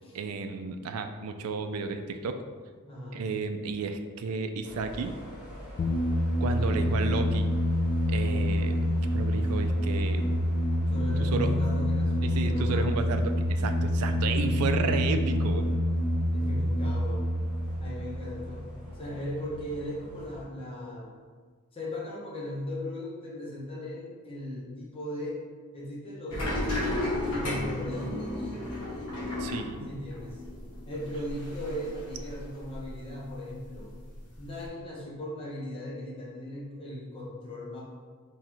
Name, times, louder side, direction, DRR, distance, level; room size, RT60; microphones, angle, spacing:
voice 1, 0.1-2.4 3.1-5.2 6.4-7.5 8.1-10.3 11.2-11.5 12.2-15.7 29.4-29.9, right 4 dB, 75° right, 8 dB, 0.3 m, -32 dB
voice 2, 2.9-3.3 6.6-6.9 10.9-13.1 16.3-17.2 17.8-21.1 21.7-25.4 25.7-28.6 29.9-30.4 30.9-33.9 34.4-37.8, left 1 dB, 25° left, -6 dB, 0.8 m, -37 dB
sound 1, 4.6-20.4, equal, 5° right, 1.2 m, -46 dB
sound 2, 5.8-19.0, left 1 dB, 45° left, 0.3 m, -27 dB
sound 3, 26.3-33.0 33.3-34.7, left 1 dB, 85° left, 1.0 m, -34 dB
3.8 x 3.1 x 2.9 m, 1.5 s
head